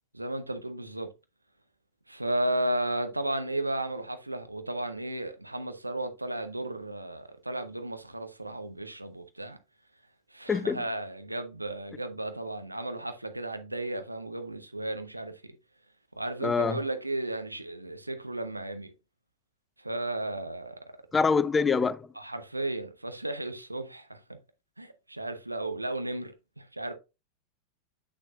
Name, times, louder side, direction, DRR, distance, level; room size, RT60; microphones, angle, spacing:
voice 1, 0.1-1.1 2.1-9.6 10.3-15.4 16.2-18.9 19.8-20.7 22.2-24.2 24.8-26.9, right 1 dB, 85° right, 0.8 m, -34 dB
voice 2, 10.5-10.8 16.4-16.8 21.1-22.1, left 5 dB, 15° left, 0.5 m, -25 dB
7.4 x 6.6 x 2.4 m
figure-of-eight pair, 90°, 0 cm